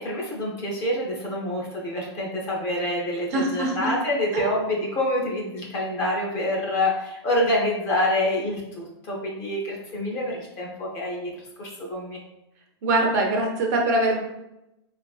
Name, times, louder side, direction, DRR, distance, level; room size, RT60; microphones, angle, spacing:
voice 1, 0.0-11.3 11.6-12.2, left 1 dB, 20° left, -2 dB, 0.5 m, -27 dB
voice 2, 3.3-3.9 4.3-4.5 12.8-14.2, right 2 dB, 35° right, 1 dB, 0.4 m, -23 dB
2.9 x 2.4 x 2.3 m, 0.89 s
hypercardioid pair, 165°, 14 cm